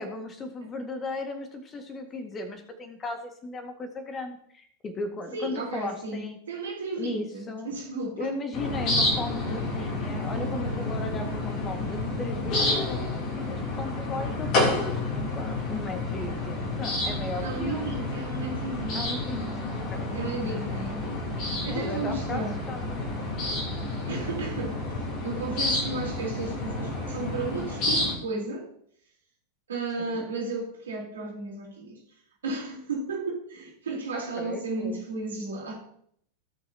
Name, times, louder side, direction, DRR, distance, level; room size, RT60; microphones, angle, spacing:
voice 1, 0.0-6.4 7.0-7.7 8.2-15.0 15.3-17.9 18.9-19.5 19.7-20.1 20.4-20.9 21.7-22.4 22.7-23.0 30.0-30.3 34.4-35.0, left 2 dB, 20° left, 1.9 m, -36 dB
voice 2, 5.3-8.3 17.4-19.5 20.1-21.2 21.6-22.6 24.1-24.8 25.2-28.7 29.7-32.0 32.4-35.8, right 3 dB, 65° right, 3.9 m, -34 dB
sound 1, 8.5-28.2, left 2 dB, 40° left, 3.1 m, -30 dB
17.5 x 6.5 x 2.9 m
figure-of-eight pair, 90°, 0 cm